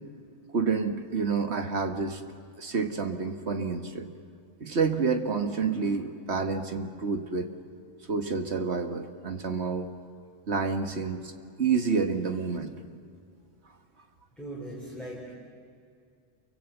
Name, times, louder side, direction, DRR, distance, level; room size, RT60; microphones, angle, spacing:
voice 1, 0.5-2.2 2.6-4.1 4.6-7.5 8.1-9.9 10.5-11.3 11.6-12.7, right 5 dB, 65° right, 7 dB, 1.7 m, -28 dB
voice 2, 14.4-15.3, right 1 dB, ahead, -4 dB, 4.3 m, -39 dB
29.0 x 24.0 x 8.0 m, 2.4 s
omnidirectional pair, 1.2 m